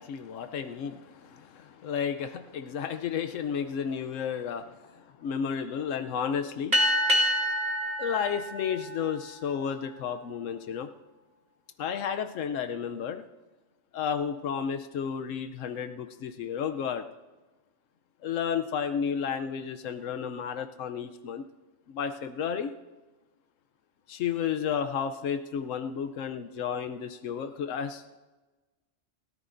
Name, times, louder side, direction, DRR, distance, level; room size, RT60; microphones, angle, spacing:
voice 1, 0.0-6.8 8.0-10.9 11.8-13.2 13.9-17.0 18.2-21.4 21.9-22.7 24.1-28.2, left 7 dB, 85° left, 8 dB, 1.0 m, -32 dB
sound 1, 6.7-9.7, equal, 35° right, 2.0 m, -27 dB
28.0 x 14.0 x 2.6 m, 1.2 s
omnidirectional pair, 1.3 m